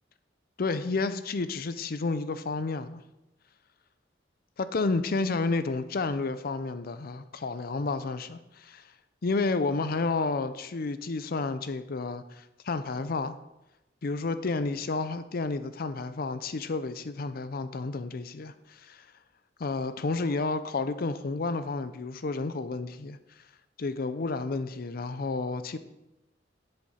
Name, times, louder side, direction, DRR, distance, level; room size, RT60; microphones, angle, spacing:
voice 1, 0.6-3.0 4.6-8.8 9.2-13.4 14.0-19.1 19.6-23.2 23.8-25.8, left 3 dB, 50° left, 0.5 m, -31 dB
11.0 x 7.7 x 4.2 m
head